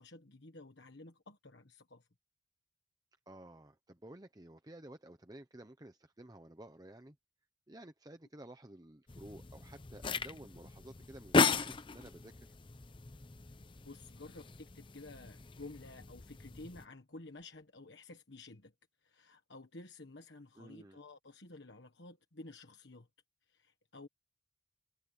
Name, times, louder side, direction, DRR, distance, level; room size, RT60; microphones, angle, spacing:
voice 1, 0.0-2.1 13.8-18.7 19.0-23.1 23.5-24.1, left 2 dB, 60° left, 1.4 m, -52 dB
voice 2, 3.3-7.2 7.7-12.5 20.6-21.0, right 1 dB, 20° right, 0.9 m, -53 dB
sound 1, 9.1-16.9, left 4 dB, 25° left, 0.6 m, -36 dB
head